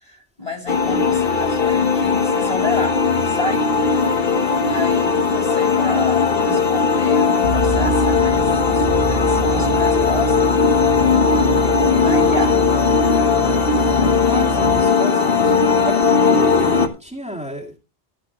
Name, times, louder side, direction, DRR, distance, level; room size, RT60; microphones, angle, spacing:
voice 1, 0.0-3.8 4.5-10.5 11.1-12.6 13.4-14.3, left 3 dB, 35° left, 3 dB, 3.2 m, -31 dB
sound 1, 0.7-16.9, left 5 dB, 65° left, 1.3 m, -18 dB
sound 2, 7.4-14.8, right 5 dB, 85° right, 1.1 m, -27 dB
voice 2, 14.2-15.5 15.8-17.8, equal, 5° right, -1 dB, 2.0 m, -30 dB
14.0 x 10.5 x 3.0 m, 0.29 s
omnidirectional pair, 1.0 m